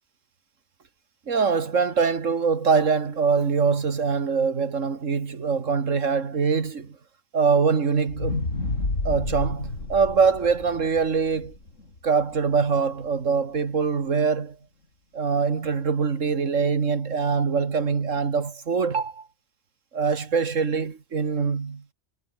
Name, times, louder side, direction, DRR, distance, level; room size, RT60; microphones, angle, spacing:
voice 1, 1.3-7.0 7.3-8.4 9.0-11.5 12.0-14.6 15.1-19.3 19.9-21.8, right 5 dB, 80° right, 2.2 m, -23 dB
sound 1, 8.1-12.3 12.8-12.9, left 2 dB, 80° left, 4.9 m, -30 dB
omnidirectional pair, 1.3 m